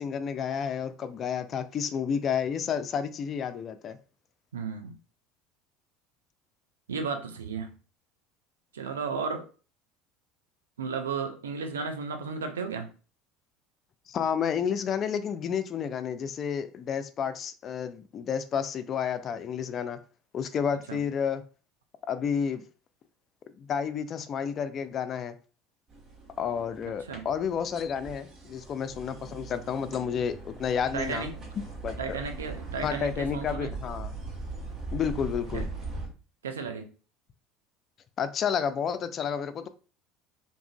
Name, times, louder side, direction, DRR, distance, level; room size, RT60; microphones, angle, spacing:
voice 1, 0.0-4.0 14.1-20.0 20.3-21.4 22.1-22.6 23.6-25.4 26.4-32.2 32.8-34.1 34.9-35.6 38.2-39.7, left 7 dB, 45° left, 0.3 m, -31 dB
voice 2, 4.5-5.0 6.9-7.8 8.7-9.5 10.8-12.9 20.9-21.0 27.1-27.3 30.9-31.3 32.0-33.7 35.5-35.7 36.4-36.9, right 5 dB, 85° right, 0.3 m, -34 dB
sound 1, 25.9-36.1, right 3 dB, 45° right, 1.0 m, -40 dB
2.6 x 2.4 x 2.2 m
hypercardioid pair, 70°, 0 cm